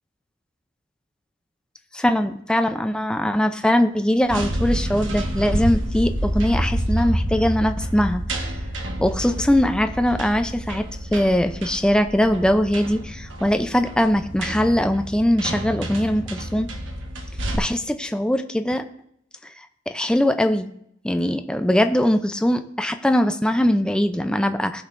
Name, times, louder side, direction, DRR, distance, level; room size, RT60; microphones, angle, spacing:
voice 1, 1.9-8.2 9.0-10.9 11.1-16.7 17.5-18.8 19.9-20.7 21.0-24.8, left 1 dB, 5° left, 7 dB, 0.5 m, -21 dB
sound 1, 4.2-17.6, right 1 dB, 70° right, 1.3 m, -28 dB
18.5 x 6.3 x 2.6 m, 0.74 s
head